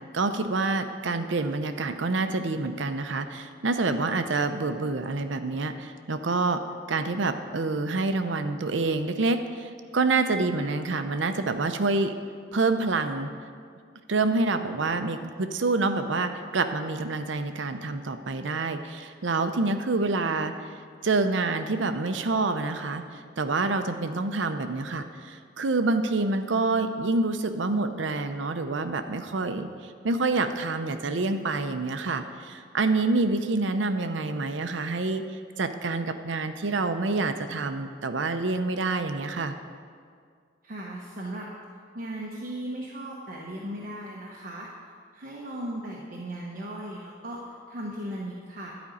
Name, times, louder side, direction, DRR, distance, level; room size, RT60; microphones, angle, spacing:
voice 1, 0.1-6.6 6.9-12.1 12.5-13.3 14.1-20.5 21.0-35.2 35.6-39.6, right 3 dB, 70° right, 8 dB, 0.7 m, -27 dB
voice 2, 40.6-41.5 41.9-44.7 45.1-48.7, right 1 dB, 45° right, -3 dB, 1.0 m, -37 dB
11.0 x 5.2 x 8.6 m, 2.1 s
head